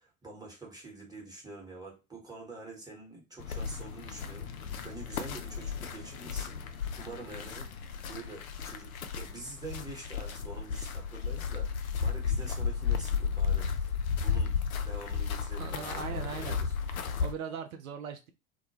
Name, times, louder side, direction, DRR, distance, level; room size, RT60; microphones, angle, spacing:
voice 1, 0.0-6.6 7.0-7.7 8.0-14.6 14.8-16.7, right 3 dB, 10° right, 1.1 m, -46 dB
sound 1, 3.4-17.3, left 6 dB, 75° left, 0.5 m, -34 dB
voice 2, 15.6-16.6 17.2-18.3, right 7 dB, 75° right, 0.5 m, -39 dB
2.2 x 2.1 x 2.9 m
figure-of-eight pair, 80°, 42 cm